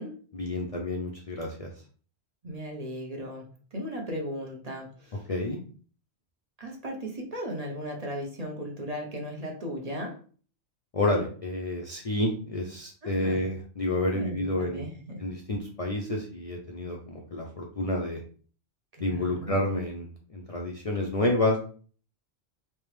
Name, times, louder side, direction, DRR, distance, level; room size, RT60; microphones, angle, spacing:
voice 1, 0.3-1.7 5.3-5.6 10.9-14.9 15.2-18.2 19.0-21.6, left 1 dB, 45° left, -1 dB, 0.5 m, -29 dB
voice 2, 2.4-3.4 3.7-5.3 6.6-10.1 13.0-13.4 14.1-15.2 18.9-19.6, equal, 40° right, 0 dB, 0.9 m, -36 dB
3.4 x 2.9 x 3.2 m, 0.42 s
omnidirectional pair, 1.1 m